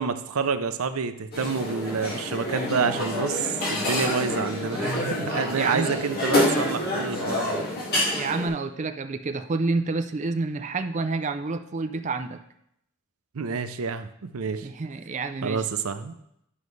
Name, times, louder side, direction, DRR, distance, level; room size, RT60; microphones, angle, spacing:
voice 1, 0.0-7.7 13.3-14.7 15.4-16.2, right 5 dB, 85° right, 10 dB, 0.6 m, -28 dB
sound 1, 1.3-8.5, left 1 dB, 50° left, 2.2 m, -27 dB
voice 2, 5.5-5.9 8.1-12.4 14.6-15.6, right 3 dB, 35° right, 8 dB, 0.4 m, -28 dB
11.0 x 5.3 x 3.2 m, 0.77 s
head